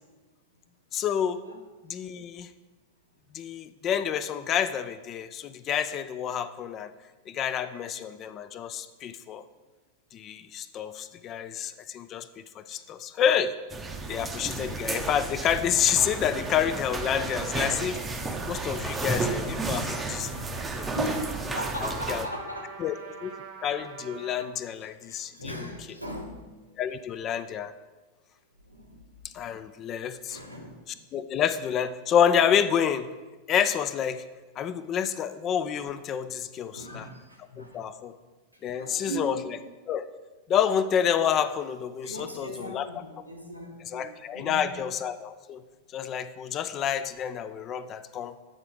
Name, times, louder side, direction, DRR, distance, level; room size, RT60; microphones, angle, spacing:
voice 1, 0.9-1.4 1.8-2.5 3.3-6.9 7.3-9.4 10.1-12.3 12.6-13.5 14.1-20.4 20.7-20.9 22.1-22.3 22.8-22.9 23.2-23.4 23.6-25.6 26.8-27.7 29.3-30.4 31.1-33.1 33.5-34.2 34.6-37.1 37.6-38.2 38.6-39.6 39.9-40.1 40.5-42.9 43.9-45.6 45.9-48.4, left 8 dB, 30° left, 13 dB, 0.3 m, -28 dB
sound 1, 13.7-22.3, right 3 dB, 15° right, 0.6 m, -32 dB
Trumpet, 15.9-24.5, right 5 dB, 50° right, 0.8 m, -45 dB
voice 2, 20.9-23.0 25.0-26.8 28.6-29.2 30.3-30.8 36.7-37.8 38.8-39.6 42.0-44.8, right 1 dB, 90° right, 1 dB, 0.9 m, -39 dB
8.8 x 3.8 x 4.7 m, 1.3 s
figure-of-eight pair, 90°, 0 cm